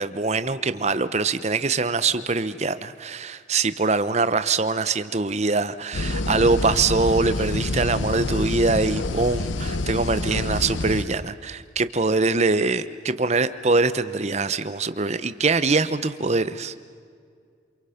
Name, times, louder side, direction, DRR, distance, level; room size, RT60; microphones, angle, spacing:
voice 1, 0.0-16.7, right 3 dB, 35° right, 12 dB, 0.8 m, -23 dB
sound 1, 5.9-11.0, left 2 dB, 75° left, 1.0 m, -27 dB
28.5 x 27.0 x 5.9 m, 2.1 s
head